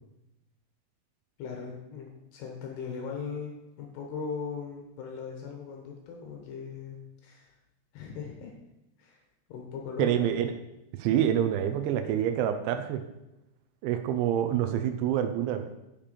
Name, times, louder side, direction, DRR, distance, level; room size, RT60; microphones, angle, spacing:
voice 1, 1.4-3.5 3.8-7.5 7.9-8.5 9.0-9.2 9.5-10.4, left 5 dB, 70° left, 1 dB, 2.8 m, -39 dB
voice 2, 10.0-10.5 11.0-13.0 13.8-15.7, right 10 dB, 80° right, 7 dB, 2.9 m, -27 dB
7.4 x 6.9 x 5.1 m, 0.92 s
omnidirectional pair, 5.5 m